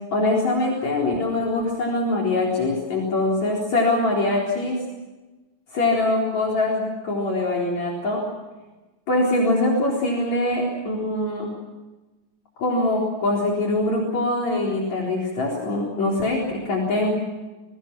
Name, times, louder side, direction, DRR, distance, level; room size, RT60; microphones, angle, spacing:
voice 1, 0.1-4.8 5.7-8.2 9.1-11.5 12.6-17.2, left 2 dB, 60° left, -2 dB, 5.2 m, -23 dB
29.0 x 23.0 x 6.1 m, 1.1 s
omnidirectional pair, 3.7 m